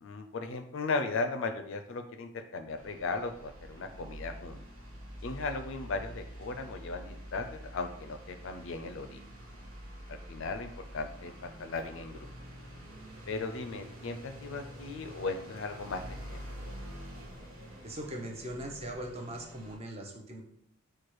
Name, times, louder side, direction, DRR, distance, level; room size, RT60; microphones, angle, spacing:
voice 1, 0.0-4.6 5.2-9.2 10.1-12.3 13.3-16.4, left 3 dB, 60° left, 8 dB, 0.4 m, -37 dB
sound 1, 2.7-19.8, equal, 70° right, 1.1 m, -47 dB
voice 2, 17.8-20.4, right 1 dB, 30° right, 1 dB, 0.6 m, -40 dB
4.6 x 2.3 x 4.6 m, 0.68 s
head